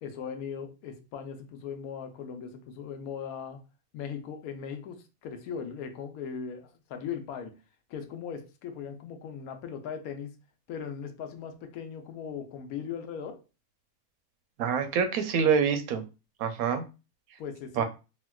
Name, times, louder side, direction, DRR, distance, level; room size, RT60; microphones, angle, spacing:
voice 1, 0.0-3.6 3.9-7.6 7.9-10.4 10.7-13.4 17.4-17.8, left 7 dB, 85° left, 1.1 m, -39 dB
voice 2, 14.6-16.0 16.4-16.8 17.8-17.9, right 6 dB, 80° right, 1.0 m, -26 dB
4.2 x 2.1 x 2.2 m
omnidirectional pair, 1.5 m